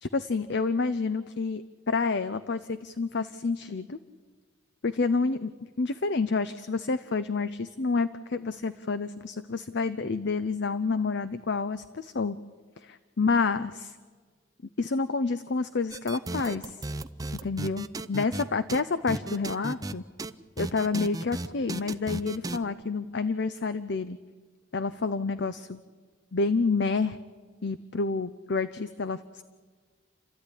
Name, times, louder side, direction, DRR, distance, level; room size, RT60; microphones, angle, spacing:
voice 1, 0.1-4.0 4.8-5.5 5.8-12.4 12.8-14.0 14.8-16.8 17.4-20.0 20.6-24.2 24.7-25.8 26.3-27.2 27.6-29.4, left 4 dB, 60° left, 12 dB, 0.7 m, -29 dB
sound 1, 15.9-18.4 18.7-18.8 19.1-19.9 20.2-20.3 20.6-22.6, right 2 dB, 20° right, 0.7 m, -34 dB
30.0 x 13.5 x 10.0 m, 1.5 s
head